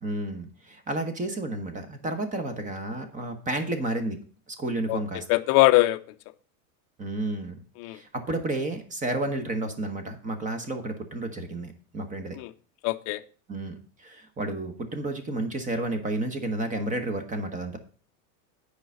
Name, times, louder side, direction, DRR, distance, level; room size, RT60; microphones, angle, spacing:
voice 1, 0.0-4.2 4.6-5.2 7.0-7.6 7.9-12.4 13.5-17.8, right 2 dB, 15° right, 7 dB, 1.1 m, -31 dB
voice 2, 5.3-6.0 7.8-8.0 12.4-12.5 12.8-13.2, left 19 dB, 40° left, 10 dB, 0.5 m, -21 dB
9.1 x 4.8 x 5.5 m, 0.41 s
supercardioid pair, 145°, 45 cm